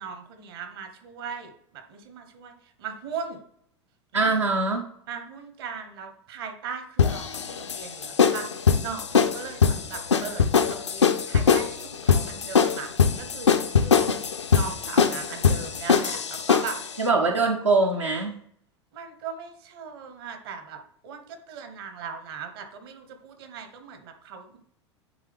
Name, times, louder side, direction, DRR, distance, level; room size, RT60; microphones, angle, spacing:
voice 1, 0.0-3.4 4.1-4.4 5.1-12.9 13.2-16.8 18.9-20.8 21.0-24.6, right 6 dB, 55° right, 7 dB, 1.2 m, -39 dB
voice 2, 4.1-4.8 17.0-18.3, right 3 dB, 80° right, 0 dB, 0.8 m, -22 dB
sound 1, 7.0-16.9, left 6 dB, 75° left, 0.5 m, -22 dB
10.0 x 3.4 x 3.5 m, 0.67 s
figure-of-eight pair, 80°, 15 cm